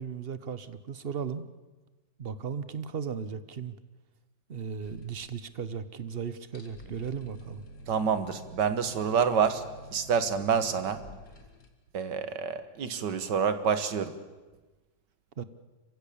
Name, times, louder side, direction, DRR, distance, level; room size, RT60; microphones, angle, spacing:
voice 1, 0.0-1.5 2.2-3.8 4.5-7.6 15.4-15.5, right 6 dB, 45° right, 14 dB, 0.9 m, -36 dB
sound 1, 4.8-5.8 6.1-6.2 6.4-11.7, equal, 70° left, 2.6 m, -49 dB
voice 2, 7.9-9.6 9.9-11.0 11.9-14.1, right 7 dB, 85° right, 11 dB, 2.0 m, -27 dB
26.5 x 15.5 x 8.6 m, 1.2 s
omnidirectional pair, 1.8 m